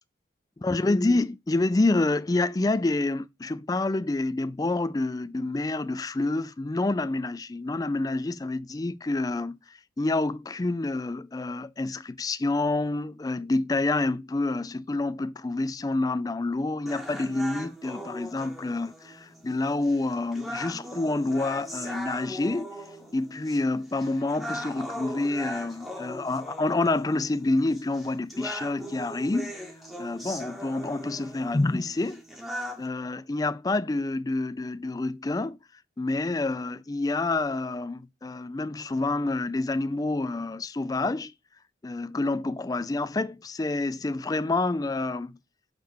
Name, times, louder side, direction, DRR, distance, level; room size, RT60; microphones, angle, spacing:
voice 1, 0.6-9.6 10.0-22.7 23.1-29.5 30.0-32.2 32.8-35.6 36.0-41.3 41.8-45.4, left 2 dB, 20° left, 0.3 m, -28 dB
sound 1, 16.9-32.9, equal, ahead, 1.0 m, -40 dB
6.5 x 3.5 x 6.2 m
head